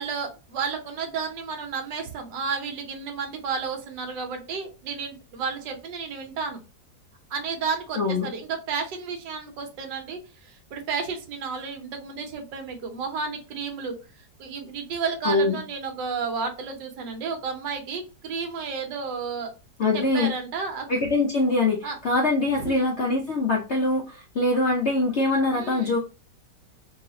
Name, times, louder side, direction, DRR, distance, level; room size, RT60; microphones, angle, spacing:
voice 1, 0.0-6.6 7.3-14.0 14.4-19.5 19.9-20.9 21.1-21.3 21.8-22.0 22.6-22.9 25.5-25.9, right 5 dB, 75° right, 5 dB, 1.6 m, -32 dB
voice 2, 8.0-8.3 15.2-15.6 19.8-20.3 20.9-26.0, left 2 dB, 60° left, -1 dB, 0.7 m, -23 dB
3.4 x 3.2 x 2.8 m, 0.32 s
omnidirectional pair, 1.9 m